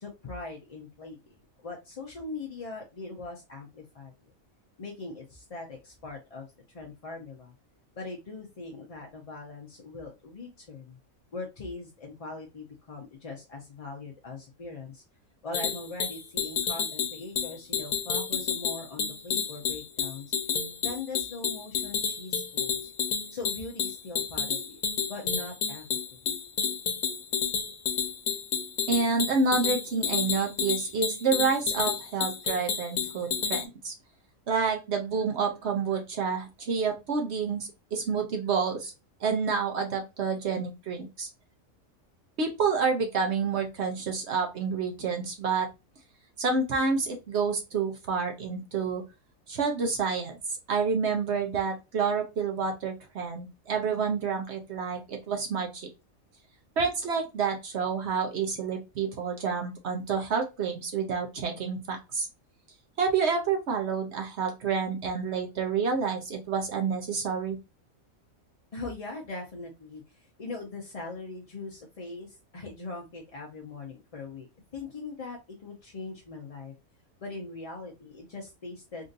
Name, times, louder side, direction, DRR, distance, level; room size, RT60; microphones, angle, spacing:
voice 1, 0.0-4.1 4.8-7.5 8.0-11.0 11.3-15.0 15.4-20.3 20.8-22.9 23.3-24.8 25.1-25.8 26.1-26.2 68.7-76.7 77.2-79.1, left 3 dB, 45° left, 0 dB, 0.5 m, -41 dB
sound 1, 15.5-33.7, left 6 dB, 70° left, 1.1 m, -30 dB
voice 2, 28.9-33.9 34.5-38.9 39.2-41.3 42.4-45.7 46.4-49.0 49.5-50.4 50.7-55.9 56.8-62.3 63.0-67.6, right 5 dB, 60° right, 3 dB, 0.9 m, -29 dB
3.7 x 2.6 x 2.4 m, 0.26 s
omnidirectional pair, 1.4 m